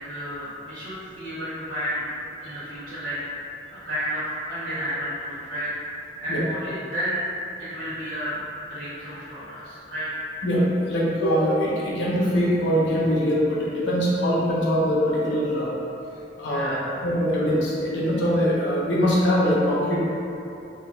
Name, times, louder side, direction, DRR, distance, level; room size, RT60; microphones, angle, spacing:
voice 1, 0.0-2.0 2.4-3.2 3.7-7.2 7.6-10.1 16.4-16.8, equal, 70° right, -13 dB, 1.1 m, -32 dB
voice 2, 10.4-15.7 16.4-16.8 17.0-20.0, equal, 85° left, -6 dB, 0.9 m, -22 dB
4.7 x 3.0 x 2.5 m, 2.9 s
head